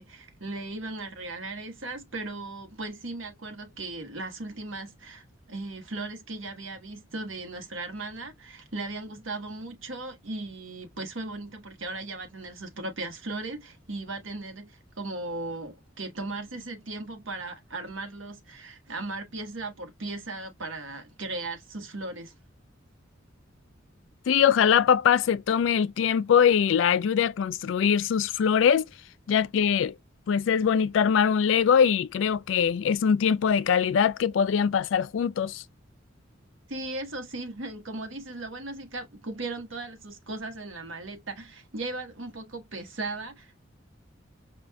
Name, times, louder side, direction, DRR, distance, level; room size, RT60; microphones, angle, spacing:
voice 1, 0.0-22.3 36.7-43.6, right 2 dB, 85° right, 1.3 m, -37 dB
voice 2, 24.3-28.9 29.3-30.0 30.3-35.6, left 7 dB, 70° left, 0.3 m, -22 dB
5.1 x 2.4 x 2.2 m
head